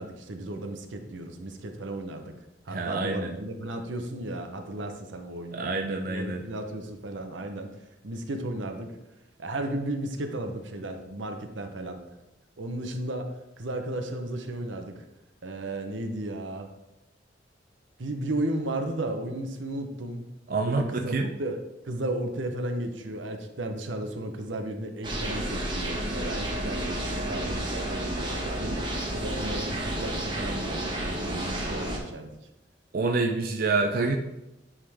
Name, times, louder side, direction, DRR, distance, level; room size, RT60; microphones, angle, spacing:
voice 1, 0.0-2.3 2.6-5.7 6.1-7.7 8.0-9.0 9.4-12.0 12.6-15.0 15.4-16.7 18.0-20.2 20.6-21.6 21.8-28.8 29.1-32.3, right 1 dB, 85° right, 5 dB, 0.8 m, -34 dB
voice 2, 2.7-3.3 5.5-6.4 20.5-20.9 21.1-21.3 32.9-34.2, right 3 dB, 50° right, 3 dB, 0.5 m, -27 dB
sound 1, 25.0-32.0, right 1 dB, 25° right, 1.1 m, -31 dB
9.8 x 3.7 x 3.5 m, 0.93 s
head